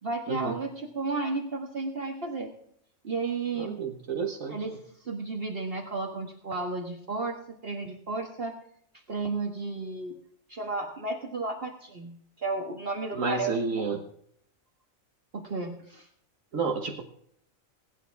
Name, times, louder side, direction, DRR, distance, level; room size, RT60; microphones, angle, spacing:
voice 1, 0.0-2.5 3.0-3.7 4.5-4.8 5.0-7.4 7.6-8.6 9.1-10.2 10.5-14.0 15.3-16.1, right 3 dB, 45° right, 1 dB, 1.7 m, -33 dB
voice 2, 3.6-4.6 13.1-14.0 16.5-17.0, right 4 dB, 70° right, 2 dB, 1.7 m, -30 dB
20.5 x 10.0 x 3.5 m, 0.67 s
omnidirectional pair, 1.4 m